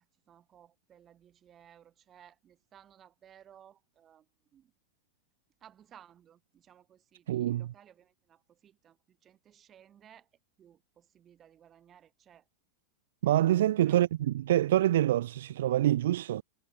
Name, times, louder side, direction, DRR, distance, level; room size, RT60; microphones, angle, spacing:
voice 1, 0.0-4.7 5.6-10.3 10.6-12.5 13.9-14.0, right 9 dB, 25° right, 4.3 m, -58 dB
voice 2, 7.3-7.7 13.2-14.1 14.5-16.4, right 13 dB, 60° right, 0.4 m, -25 dB
figure-of-eight pair, 90°, 0 cm